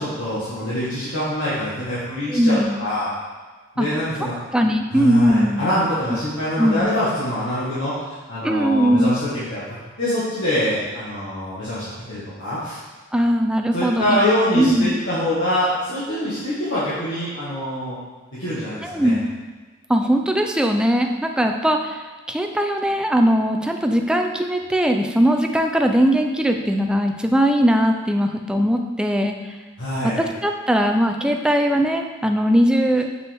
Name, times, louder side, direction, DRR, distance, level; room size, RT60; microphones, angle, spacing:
voice 1, 0.0-3.1 3.8-4.3 4.9-12.8 13.7-18.0 18.3-19.2 29.8-30.2, equal, 65° left, -11 dB, 1.9 m, -25 dB
voice 2, 2.3-2.8 3.8-3.9 4.5-5.6 6.6-6.9 8.4-9.2 13.1-14.3 14.5-15.0 18.8-19.3 19.9-29.4 30.2-33.1, equal, 5° right, 3 dB, 0.5 m, -19 dB
7.0 x 7.0 x 3.6 m, 1.3 s
head